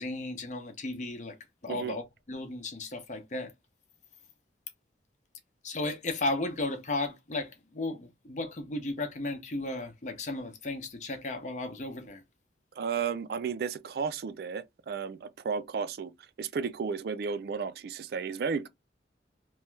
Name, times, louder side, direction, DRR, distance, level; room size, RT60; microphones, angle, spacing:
voice 1, 0.0-1.4 1.6-2.0 2.3-3.5 5.6-12.2, left 2 dB, 40° left, 0.6 m, -34 dB
voice 2, 12.8-16.1 16.4-18.7, right 6 dB, 60° right, 0.3 m, -33 dB
3.0 x 2.2 x 3.1 m
head